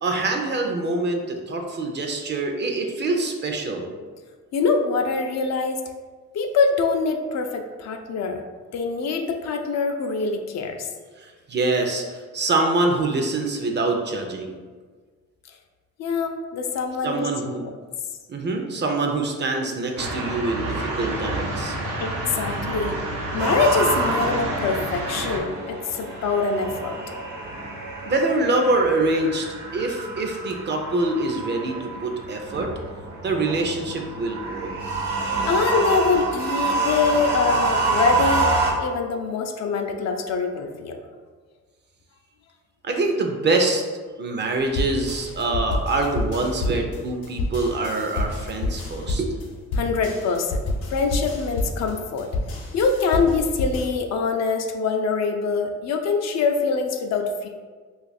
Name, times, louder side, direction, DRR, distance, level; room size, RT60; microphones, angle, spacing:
voice 1, 0.0-3.9 11.2-14.5 17.0-17.7 18.3-21.8 28.1-29.5 29.7-32.7 33.2-34.8 42.8-43.8 44.2-49.4, right 2 dB, 35° right, 3 dB, 0.5 m, -25 dB
voice 2, 4.5-5.8 6.3-8.4 8.7-10.9 16.0-17.3 17.6-17.7 22.0-23.0 23.3-27.0 35.4-41.0 49.8-50.6 50.9-52.3 52.7-57.5, left 4 dB, 60° left, 4 dB, 0.5 m, -24 dB
sound 1, 20.0-25.4, right 1 dB, 90° right, 0.7 m, -29 dB
sound 2, 23.4-38.7, right 3 dB, 70° right, 1.0 m, -27 dB
sound 3, 44.7-53.9, left 2 dB, 85° left, 0.8 m, -28 dB
2.5 x 2.4 x 4.0 m, 1.5 s
cardioid pair, 90°, 30 cm